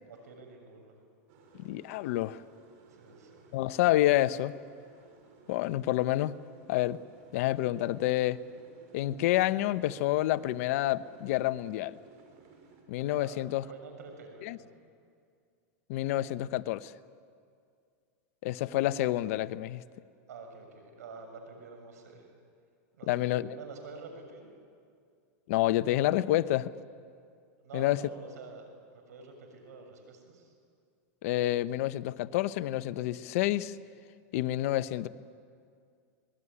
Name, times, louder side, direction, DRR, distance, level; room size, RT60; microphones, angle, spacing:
voice 1, 0.1-0.9 2.9-3.4 13.0-14.7 20.3-22.2 22.9-24.5 27.6-30.5, right 4 dB, 90° right, 4 dB, 6.9 m, -48 dB
sound 1, 1.3-12.8, right 4 dB, 60° right, 6.2 m, -58 dB
voice 2, 1.6-2.4 3.5-4.5 5.5-6.3 6.7-7.0 7.3-8.4 8.9-11.9 12.9-13.6 14.4-14.6 15.9-16.9 18.4-19.8 23.1-23.5 25.5-26.7 27.7-28.0 31.2-33.7 34.3-35.1, left 15 dB, 65° left, 14 dB, 0.9 m, -28 dB
25.0 x 20.0 x 9.9 m, 2.3 s
supercardioid pair, 130°, 9 cm